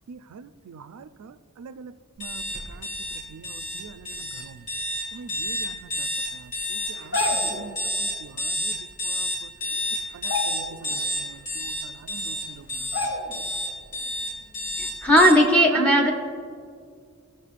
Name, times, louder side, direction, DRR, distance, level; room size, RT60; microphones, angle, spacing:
voice 1, 0.1-1.3 1.6-1.9 2.2-2.4 2.7-2.9 3.3-4.5 5.1-6.1 7.0-7.1 7.5-8.7 9.0-9.3 10.1-10.7 10.9-12.6 15.7-16.1, right 7 dB, 90° right, 13 dB, 0.4 m, -43 dB
sound 1, 2.2-15.3, left 1 dB, 35° left, 2.0 m, -29 dB
sound 2, 6.9-7.7 9.1-9.2 9.5-9.8 10.2-11.0 11.4-11.5 12.3-12.4 12.9-13.5 13.9-14.1, left 2 dB, 55° left, 0.9 m, -30 dB
voice 2, 15.0-16.1, equal, 5° left, 0 dB, 0.6 m, -16 dB
15.0 x 6.4 x 2.5 m, 2.2 s
head